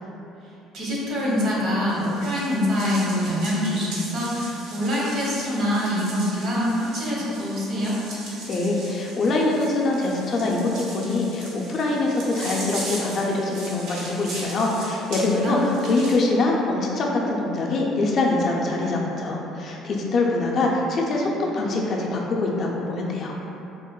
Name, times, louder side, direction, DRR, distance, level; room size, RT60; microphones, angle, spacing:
voice 1, 0.7-7.9 15.1-15.6, left 1 dB, 55° right, -6 dB, 0.7 m, -25 dB
sound 1, 1.9-16.2, right 1 dB, 85° right, 0.7 m, -39 dB
voice 2, 8.5-23.3, left 2 dB, 40° left, -1 dB, 0.4 m, -24 dB
3.7 x 2.1 x 2.2 m, 3.0 s
cardioid pair, 135°, 0 cm